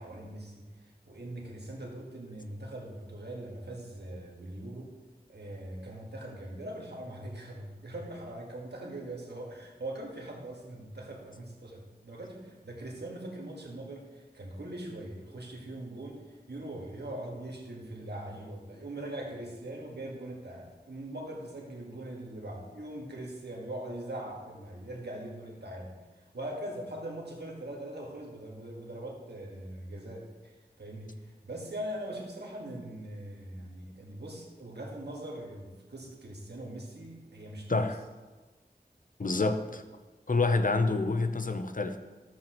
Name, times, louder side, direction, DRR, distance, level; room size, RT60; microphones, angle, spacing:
voice 1, 0.0-4.9 5.3-37.8 39.2-39.4, right 1 dB, 80° right, -1 dB, 1.7 m, -41 dB
voice 2, 37.7-38.0 39.2-39.8 40.3-42.0, left 3 dB, 50° left, 8 dB, 0.7 m, -27 dB
12.0 x 7.9 x 3.0 m, 1.3 s
wide cardioid pair, 45°, 17 cm